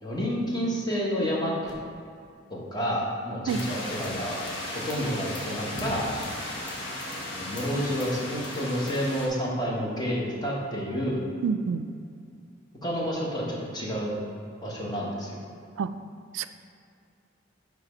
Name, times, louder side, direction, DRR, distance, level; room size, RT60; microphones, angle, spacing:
voice 1, 0.0-1.7 2.5-4.4 4.8-6.1 7.3-11.3 12.8-14.2 14.6-15.4, equal, 20° left, -4 dB, 1.2 m, -29 dB
sound 1, 3.5-9.3, left 1 dB, 65° left, 1.2 m, -35 dB
voice 2, 11.4-11.9 15.8-15.9 16.3-16.5, right 6 dB, 75° right, 11 dB, 0.3 m, -27 dB
7.4 x 3.5 x 5.1 m, 2.4 s
head